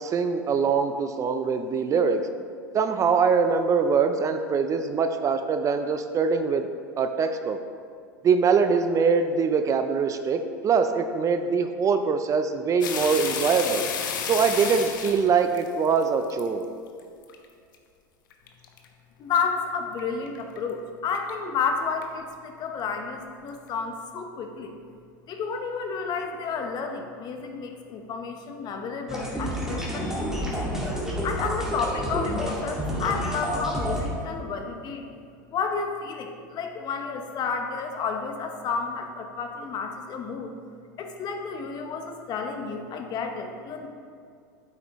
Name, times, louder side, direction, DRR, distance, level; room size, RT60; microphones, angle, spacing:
voice 1, 0.0-2.2 2.7-6.7 7.0-7.6 8.2-13.8 14.3-16.6, right 5 dB, 30° right, 8 dB, 0.5 m, -23 dB
sound 1, 12.8-16.5 17.0-17.4 17.7-17.8 18.3-18.9 19.4-19.5 20.0-20.1 20.3-20.6 21.1-21.3 22.0-22.1, left 7 dB, 80° left, 0.9 m, -31 dB
voice 2, 19.2-24.7 25.3-30.7 31.2-35.0 35.5-40.5 41.0-43.9, left 5 dB, 40° left, 4 dB, 1.1 m, -31 dB
sound 2, 29.1-34.1, equal, 5° right, 1.9 m, -29 dB
9.0 x 8.2 x 3.1 m, 2.3 s
hypercardioid pair, 95°, 11 cm